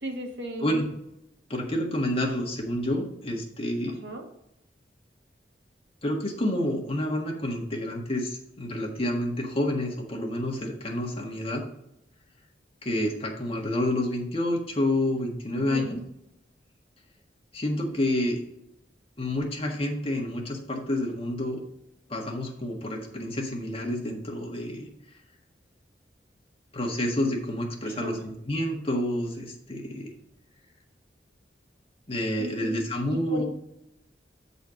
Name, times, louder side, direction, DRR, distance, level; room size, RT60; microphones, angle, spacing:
voice 1, 0.0-0.7 4.0-4.3 15.5-15.9 27.8-28.2 32.4-32.7 33.1-33.4, right 1 dB, 70° right, 2 dB, 1.5 m, -35 dB
voice 2, 1.5-4.0 6.0-11.6 12.8-16.0 17.5-18.4 19.2-21.6 22.1-24.9 26.7-30.1 32.1-33.4, left 1 dB, 35° left, 0 dB, 1.5 m, -29 dB
7.9 x 4.2 x 5.1 m, 0.81 s
head